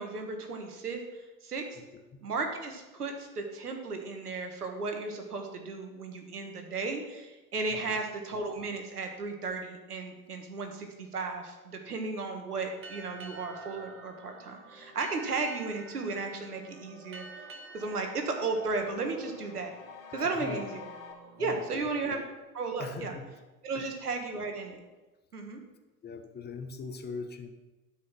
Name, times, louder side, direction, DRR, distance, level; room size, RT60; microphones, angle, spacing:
voice 1, 0.0-1.8 2.2-17.3 17.7-19.7 20.1-20.9 21.4-22.2 22.5-23.2 23.6-24.8 25.3-25.6, right 3 dB, 75° right, 4 dB, 1.9 m, -35 dB
Boat Water vehicle, 12.8-19.9, right 3 dB, 25° right, 1.4 m, -50 dB
sound 1, 12.8-21.6, right 3 dB, 60° right, 2.2 m, -54 dB
sound 2, 15.8-21.1, left 6 dB, 60° left, 2.2 m, -50 dB
voice 2, 20.1-20.6 21.4-21.9 22.1-22.2 22.8-23.2 23.7-23.9 26.0-27.5, left 4 dB, 20° left, 6 dB, 1.1 m, -41 dB
12.0 x 5.7 x 6.0 m, 1.1 s
figure-of-eight pair, 80°, 46 cm